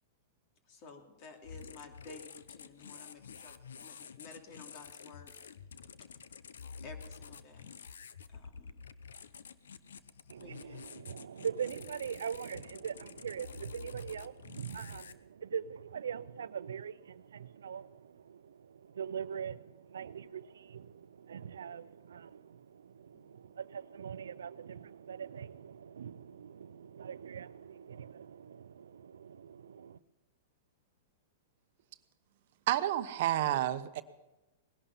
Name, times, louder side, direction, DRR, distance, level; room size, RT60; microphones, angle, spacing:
voice 1, 0.7-5.3 6.8-7.7 8.3-8.7 10.4-10.9 23.1-23.4, left 4 dB, 45° left, 4 dB, 2.9 m, -53 dB
sound 1, 1.4-15.1, left 6 dB, 80° left, 0.7 m, -49 dB
voice 2, 10.3-30.0, right 7 dB, 80° right, 17 dB, 0.5 m, -42 dB
voice 3, 32.7-34.0, right 13 dB, 60° right, 12 dB, 0.8 m, -30 dB
19.5 x 11.5 x 5.6 m, 1.0 s
hypercardioid pair, 115°, 0 cm